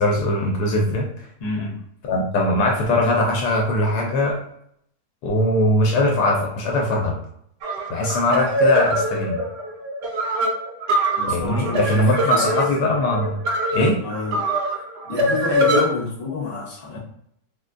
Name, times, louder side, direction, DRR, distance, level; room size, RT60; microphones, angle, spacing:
voice 1, 0.0-1.3 2.1-4.4 5.2-7.2 7.9-9.4 11.3-13.4 13.7-14.0, left 1 dB, 75° left, 0 dB, 1.1 m, -21 dB
voice 2, 1.4-1.8 11.2-12.7 14.0-14.4 15.1-17.0, left 4 dB, 45° left, -3 dB, 1.1 m, -29 dB
sound 1, 7.6-15.8, right 1 dB, 90° right, 0.5 m, -23 dB
3.6 x 2.2 x 2.4 m, 0.70 s
omnidirectional pair, 1.7 m